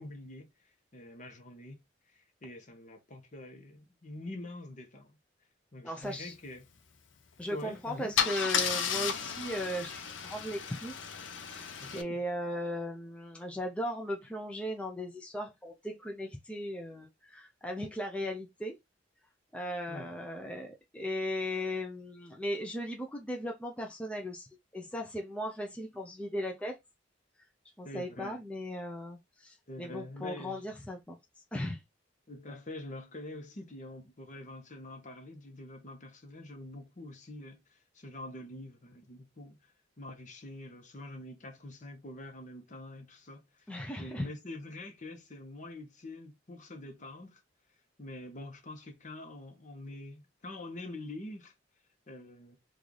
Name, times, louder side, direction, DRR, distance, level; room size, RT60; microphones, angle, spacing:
voice 1, 0.0-5.2 5.7-6.6 7.5-8.2 11.8-12.2 19.9-20.2 27.8-28.4 29.7-30.6 32.3-43.7 44.0-47.4 48.0-51.5 52.1-52.6, left 1 dB, 40° left, 0.9 m, -45 dB
voice 2, 5.8-6.3 7.4-11.1 11.5-18.8 19.5-26.8 27.8-31.2 31.5-31.8 43.7-44.3, equal, 5° left, 0.4 m, -37 dB
Car / Engine starting / Idling, 7.4-7.6 8.2-12.0, left 7 dB, 80° left, 0.6 m, -33 dB
3.1 x 2.4 x 3.8 m
head